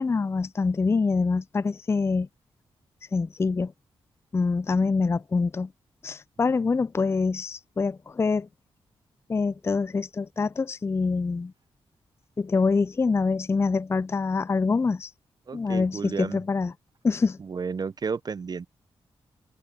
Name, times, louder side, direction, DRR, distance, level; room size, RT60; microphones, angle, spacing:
voice 1, 0.0-2.3 3.1-3.7 4.3-5.7 6.0-8.5 9.3-11.5 12.4-15.1 15.5-16.7 17.0-17.4, left 4 dB, 25° left, 0.3 m, -25 dB
voice 2, 15.5-16.4 17.4-18.7, right 5 dB, 40° right, 0.4 m, -32 dB
cardioid pair, 70°, 10 cm